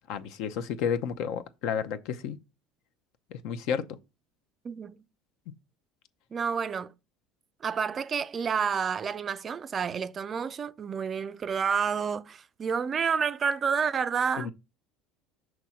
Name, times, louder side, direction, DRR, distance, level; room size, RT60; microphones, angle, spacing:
voice 1, 0.1-2.4 3.3-3.9 5.5-5.6 14.4-14.5, left 7 dB, 65° left, 0.7 m, -31 dB
voice 2, 4.6-5.0 6.3-6.9 7.6-14.5, right 6 dB, 30° right, 0.4 m, -29 dB
6.1 x 3.0 x 5.8 m
supercardioid pair, 115°, 0 cm